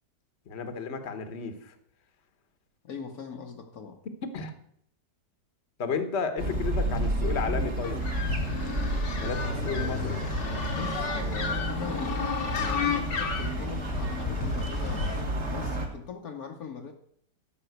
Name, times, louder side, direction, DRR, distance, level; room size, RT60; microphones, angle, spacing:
voice 1, 0.5-1.7 4.3-4.5 5.8-8.0 9.2-10.2, left 5 dB, 45° left, 9 dB, 1.3 m, -33 dB
voice 2, 2.8-4.0 10.7-16.9, left 6 dB, 60° left, 3 dB, 1.4 m, -40 dB
sound 1, 6.4-15.9, right 1 dB, 40° right, 1.9 m, -31 dB
sound 2, 7.8-15.2, left 5 dB, 85° left, 2.3 m, -33 dB
13.0 x 5.5 x 8.0 m, 0.68 s
omnidirectional pair, 1.9 m